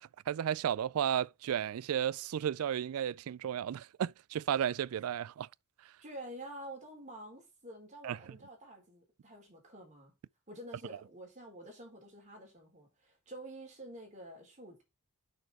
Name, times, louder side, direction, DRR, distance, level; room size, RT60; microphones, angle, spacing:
voice 1, 0.0-5.5 5.8-5.9 8.0-8.2, right 9 dB, 70° right, 0.3 m, -33 dB
voice 2, 6.0-10.1 10.5-14.8, right 1 dB, 35° right, 4.2 m, -48 dB
6.7 x 6.6 x 4.3 m
head